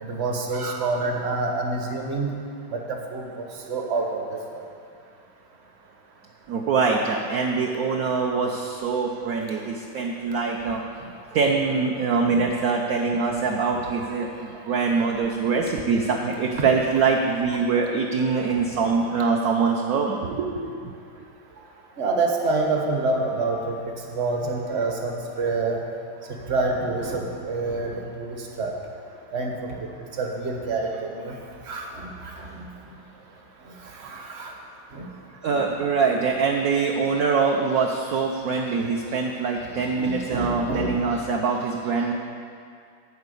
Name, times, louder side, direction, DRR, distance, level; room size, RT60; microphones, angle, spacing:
voice 1, 0.0-2.3 2.7-4.2 4.5-4.6 12.2-12.4 16.6-16.7 22.0-25.8 26.3-28.7 29.3-29.6 30.2-31.3 31.7-32.7 33.9-34.5 34.9-35.1 35.5-35.6 40.0-41.0, right 3 dB, 40° right, 1 dB, 1.1 m, -27 dB
voice 2, 6.5-10.8 11.3-21.0 35.4-42.1, right 5 dB, 65° right, 0 dB, 0.9 m, -24 dB
11.5 x 4.9 x 8.3 m, 2.3 s
omnidirectional pair, 2.2 m